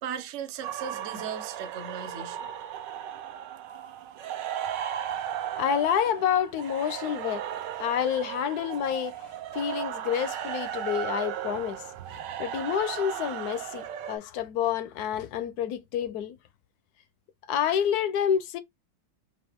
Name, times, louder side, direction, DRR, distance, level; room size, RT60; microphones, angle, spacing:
voice 1, 0.0-2.5, right 7 dB, 55° right, 0.8 m, -37 dB
sound 1, 0.6-14.2, right 10 dB, 75° right, 1.2 m, -36 dB
voice 2, 5.6-7.4 7.8-11.8 12.4-16.4 17.5-18.6, left 9 dB, 70° left, 0.9 m, -28 dB
5.5 x 2.3 x 3.4 m
omnidirectional pair, 2.1 m